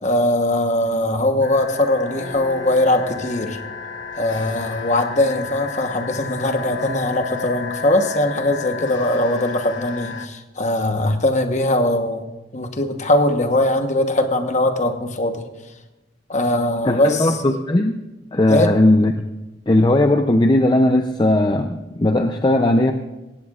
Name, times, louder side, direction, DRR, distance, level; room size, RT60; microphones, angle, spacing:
voice 1, 0.0-3.6 4.2-12.2 12.5-15.4 16.3-17.4 18.5-18.7, left 1 dB, 40° left, 6 dB, 1.1 m, -20 dB
sound 1, 1.4-10.3, left 5 dB, 85° left, 1.1 m, -32 dB
voice 2, 16.8-18.0 18.3-19.1 19.7-22.9, left 1 dB, 25° left, 6 dB, 0.5 m, -17 dB
18.0 x 16.0 x 2.4 m, 1.0 s
head